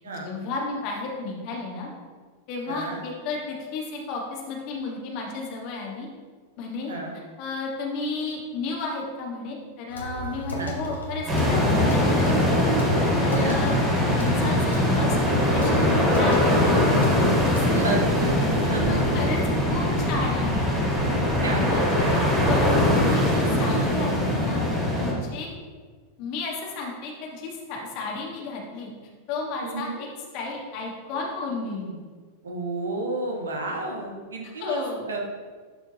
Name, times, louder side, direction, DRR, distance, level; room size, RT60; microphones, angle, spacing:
voice 1, 0.0-1.9 2.5-6.1 6.6-6.9 7.4-12.6 13.2-13.7 14.1-17.8 18.9-19.4 19.7-20.7 21.5-21.8 22.4-24.6 25.0-25.5 26.2-28.9 29.3-30.1 30.3-32.0 34.6-35.1, left 3 dB, 45° left, -1 dB, 1.4 m, -33 dB
voice 2, 2.7-3.0 6.9-7.1 10.6-10.7 13.3-13.6 17.7-18.3 18.6-19.0 21.4-22.2 29.6-30.0 32.4-35.2, right 2 dB, 70° right, 1 dB, 1.2 m, -31 dB
sound 1, 9.9-17.7, equal, 75° left, 1.2 m, -36 dB
sound 2, 11.3-25.1, left 1 dB, 30° right, 2.2 m, -22 dB
11.5 x 4.4 x 2.8 m, 1.5 s
figure-of-eight pair, 90°, 0 cm